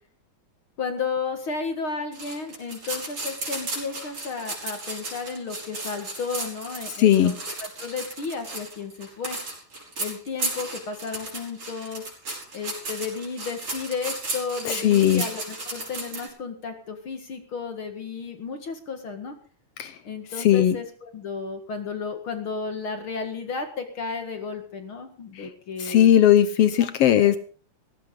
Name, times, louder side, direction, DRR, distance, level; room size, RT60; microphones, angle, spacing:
voice 1, 0.8-9.4 10.0-12.1 12.5-19.4 20.0-26.1 26.8-26.9 27.2-27.3, left 4 dB, 45° left, 6 dB, 2.1 m, -33 dB
sound 1, 2.1-16.3, right 2 dB, 40° right, 6.5 m, -34 dB
voice 2, 7.0-7.3 14.7-15.3 19.8-19.9 20.4-20.8 25.4-25.5 25.8-27.4, left 11 dB, 90° left, 12 dB, 1.3 m, -18 dB
17.5 x 16.0 x 3.8 m, 0.41 s
omnidirectional pair, 3.9 m